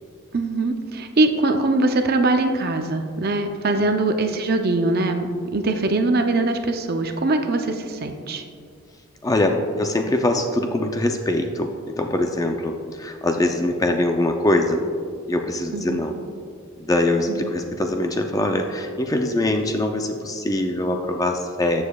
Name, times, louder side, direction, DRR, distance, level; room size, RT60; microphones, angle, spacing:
voice 1, 0.3-8.4 15.7-16.0 17.3-17.5, right 2 dB, 45° right, 6 dB, 0.5 m, -22 dB
voice 2, 9.2-14.8 15.3-16.2 16.8-21.8, left 1 dB, 15° left, 4 dB, 0.4 m, -23 dB
13.0 x 7.2 x 2.3 m, 2.2 s
head